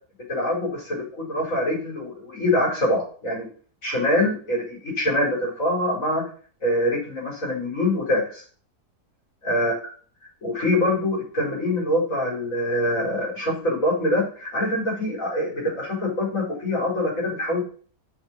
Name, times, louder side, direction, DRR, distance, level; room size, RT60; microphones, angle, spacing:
voice 1, 0.3-3.5 3.8-6.2 6.6-8.4 9.4-9.7 10.4-17.7, left 1 dB, 50° left, -4 dB, 5.4 m, -24 dB
7.7 x 7.1 x 4.6 m, 0.42 s
omnidirectional pair, 1.7 m